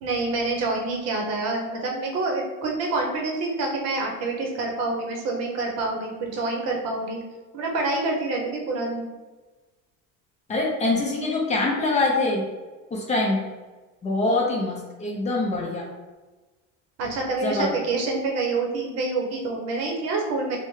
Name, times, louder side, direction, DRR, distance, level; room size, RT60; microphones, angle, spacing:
voice 1, 0.0-7.2 7.5-9.0 17.0-20.6, right 3 dB, 50° right, 0 dB, 0.8 m, -27 dB
voice 2, 10.5-12.4 12.9-13.4 14.0-15.8 17.4-17.8, left 2 dB, 20° left, -2 dB, 0.5 m, -24 dB
3.4 x 2.1 x 3.1 m, 1.3 s
cardioid pair, 150°, 33 cm